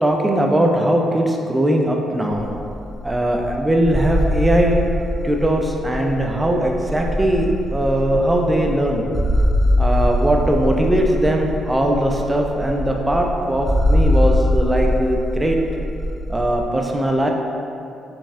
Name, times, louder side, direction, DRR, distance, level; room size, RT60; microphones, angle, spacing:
voice 1, 0.0-2.5 3.0-4.8 5.2-9.1 9.8-15.6 16.3-17.3, right 1 dB, 15° right, 1 dB, 0.4 m, -20 dB
sound 1, 2.3-16.6, left 1 dB, 5° left, 0.8 m, -22 dB
4.1 x 3.4 x 2.5 m, 2.6 s
cardioid pair, 90°, 0 cm